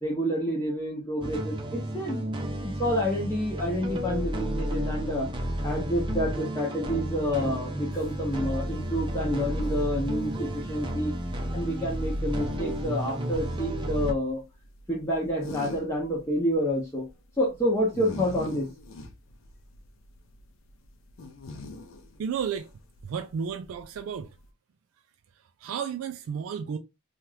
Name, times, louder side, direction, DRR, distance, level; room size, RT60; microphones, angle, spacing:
voice 1, 0.0-2.2 2.6-5.3 5.6-11.1 11.5-14.4 14.9-17.1 17.4-18.7, equal, 15° left, 0.7 m, -28 dB
sound 1, 1.2-14.1, equal, 25° right, 0.6 m, -32 dB
sound 2, 7.9-24.5, left 2 dB, 70° left, 0.5 m, -45 dB
voice 2, 22.2-22.7 23.1-24.3 25.6-26.8, right 7 dB, 75° right, 0.3 m, -32 dB
2.9 x 2.4 x 3.1 m
head